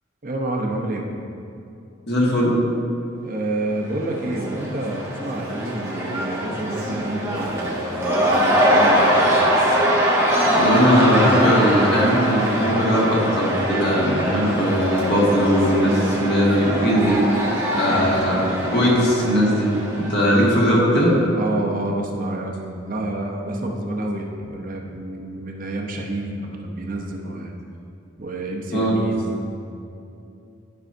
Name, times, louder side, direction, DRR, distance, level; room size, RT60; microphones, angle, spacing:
voice 1, 0.2-1.1 3.2-9.4 17.9-18.2 20.6-21.0 21.3-27.5 28.2-29.5, right 1 dB, 45° right, 1 dB, 0.7 m, -29 dB
voice 2, 2.1-2.5 10.5-18.4 18.7-21.2 28.7-28.9, equal, 55° left, -5 dB, 1.7 m, -19 dB
Cheering / Crowd, 3.8-20.6, equal, 15° right, 1.0 m, -22 dB
11.5 x 5.5 x 2.6 m, 2.7 s
head